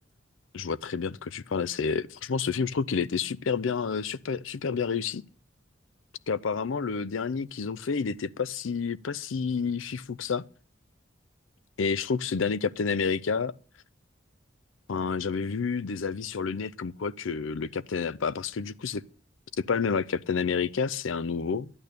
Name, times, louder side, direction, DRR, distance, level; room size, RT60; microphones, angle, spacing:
voice 1, 0.5-5.2 6.3-10.4 11.8-13.5 14.9-19.0 19.6-21.7, left 5 dB, 85° left, 0.5 m, -29 dB
12.0 x 9.0 x 6.6 m
head